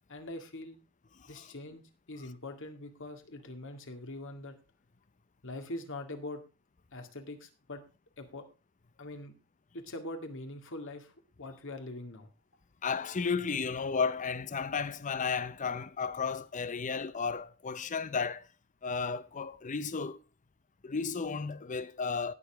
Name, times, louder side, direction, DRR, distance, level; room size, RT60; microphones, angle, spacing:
voice 1, 0.1-0.8 1.3-1.8 2.1-4.6 5.4-6.4 6.9-7.8 8.2-8.4 9.0-9.3 9.7-12.3, left 2 dB, 60° left, 2.0 m, -43 dB
voice 2, 12.8-18.5 18.8-20.2 20.8-22.3, left 5 dB, 35° left, 0.6 m, -33 dB
18.0 x 6.9 x 3.4 m
head